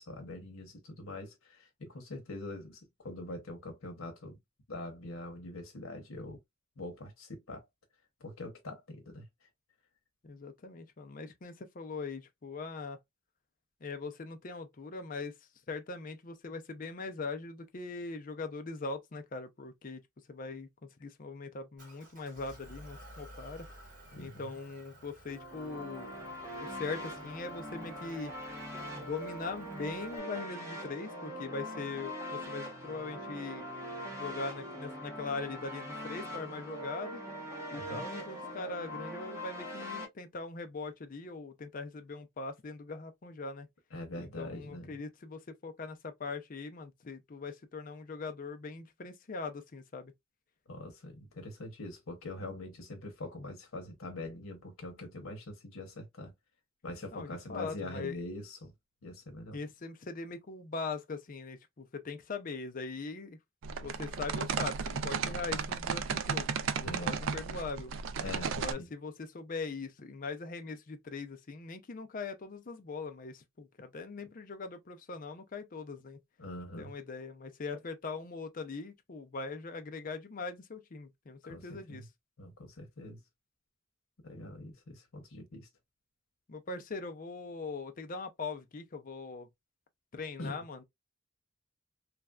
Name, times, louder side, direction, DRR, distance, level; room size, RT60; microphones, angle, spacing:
voice 1, 0.0-4.4 4.7-6.4 6.8-7.6 8.2-9.3 24.1-24.6 37.7-38.0 43.9-45.0 50.7-56.3 56.8-58.7 59.0-59.6 66.8-67.2 68.2-68.9 76.4-76.9 81.4-82.0 82.4-83.2 84.2-85.7 90.4-90.6, left 2 dB, 80° left, 0.9 m, -43 dB
voice 2, 10.2-13.0 13.8-15.3 15.7-20.0 20.3-23.7 24.2-26.1 26.6-28.3 29.0-33.7 34.1-37.2 37.7-43.7 44.2-50.1 57.1-58.2 59.5-63.4 63.8-67.9 68.4-76.2 76.8-82.1 86.5-89.5 90.1-90.8, left 4 dB, 40° left, 0.5 m, -41 dB
Motor vehicle (road) / Engine, 21.8-30.2, equal, 40° right, 1.9 m, -55 dB
sound 1, 25.3-40.0, equal, 15° right, 0.9 m, -42 dB
sound 2, 63.6-68.7, right 6 dB, 65° right, 0.4 m, -34 dB
3.2 x 2.5 x 2.2 m
head